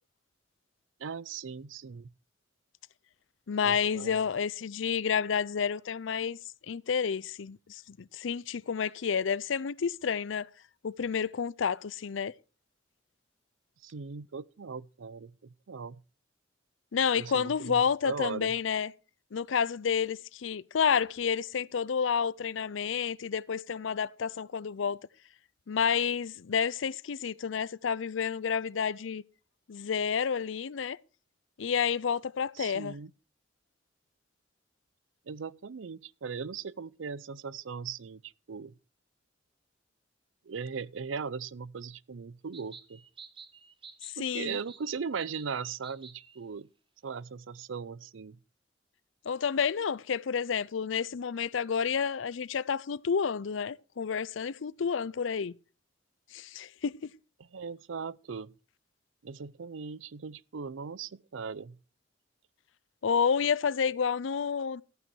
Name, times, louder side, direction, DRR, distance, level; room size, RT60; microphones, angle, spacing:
voice 1, 1.0-2.1 3.6-4.3 13.8-15.3 15.7-16.0 17.1-18.5 32.6-33.1 35.3-38.7 40.4-43.0 44.2-46.7 47.0-48.4 57.5-58.5 59.2-61.8, right 5 dB, 90° right, 0.5 m, -39 dB
voice 2, 3.5-6.4 6.7-10.5 10.8-12.3 16.9-18.9 19.3-25.0 25.7-29.2 29.7-31.0 31.6-32.9 44.2-44.6 49.3-55.5 56.3-57.1 63.0-64.8, left 6 dB, 85° left, 0.5 m, -30 dB
sound 1, 42.5-46.4, right 6 dB, 25° right, 1.0 m, -52 dB
14.0 x 9.0 x 4.6 m
head